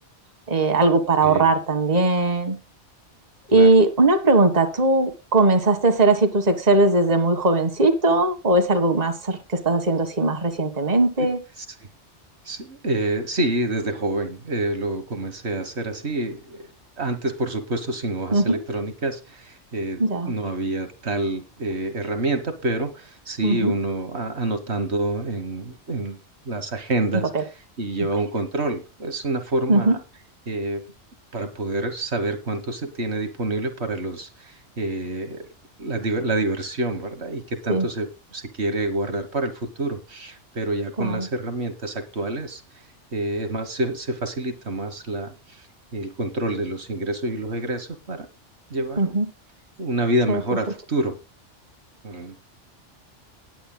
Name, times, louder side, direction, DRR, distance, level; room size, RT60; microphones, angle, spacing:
voice 1, 0.5-2.6 3.5-11.4 18.3-18.6 20.0-20.3 23.4-23.7 27.3-27.4 29.7-30.0 37.7-37.9 41.0-41.3 49.0-49.3 50.3-50.4, right 2 dB, 35° right, 7 dB, 1.7 m, -19 dB
voice 2, 12.4-16.7 17.0-26.2 26.4-27.5 27.8-30.0 30.5-30.8 31.3-35.5 35.8-42.9 43.1-45.7 45.9-48.3 48.7-49.2 49.8-51.2 52.0-52.4, right 2 dB, 65° right, 8 dB, 1.7 m, -27 dB
19.5 x 9.2 x 2.2 m, 0.27 s
omnidirectional pair, 1.2 m